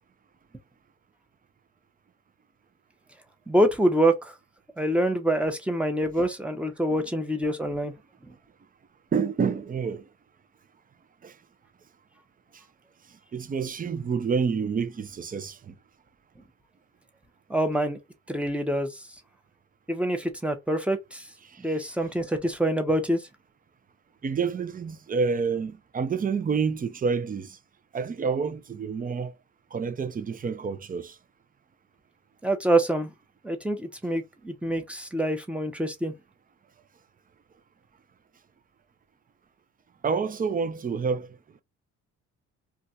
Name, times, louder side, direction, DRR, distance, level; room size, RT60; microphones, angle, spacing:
voice 1, 3.5-4.3 4.8-7.9 8.3-8.4 17.5-18.0 18.3-19.1 19.9-21.3 21.6-23.2 32.4-33.1 33.4-36.1, right 1 dB, 5° right, 0.8 m, -26 dB
voice 2, 9.1-10.1 11.2-11.3 13.3-15.7 21.4-21.6 24.2-27.6 27.9-29.3 29.7-31.2 40.0-41.4, right 5 dB, 30° right, 0.5 m, -28 dB
2.4 x 2.3 x 4.0 m
cardioid pair, 90°, 30 cm